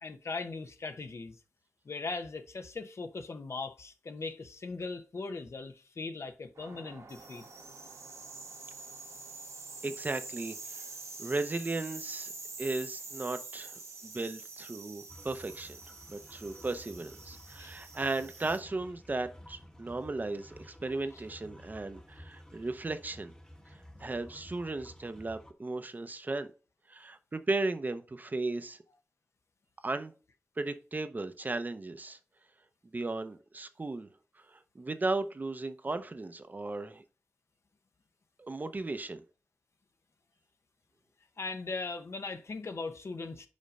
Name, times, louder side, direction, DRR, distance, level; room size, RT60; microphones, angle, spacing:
voice 1, 0.0-1.4 1.8-7.5 17.6-17.7 41.4-43.5, left 3 dB, 60° left, 0.8 m, -39 dB
sound 1, 6.6-18.6, right 3 dB, 75° right, 1.4 m, -46 dB
voice 2, 9.8-10.9 11.2-12.3 12.6-15.8 16.1-23.3 23.7-26.5 26.9-28.8 29.8-30.1 30.6-32.2 32.9-34.1 34.5-37.0 38.4-39.2, right 2 dB, 35° right, 0.6 m, -36 dB
sound 2, 15.1-25.5, equal, 15° left, 1.0 m, -53 dB
5.2 x 5.1 x 5.4 m
wide cardioid pair, 115°, 5 cm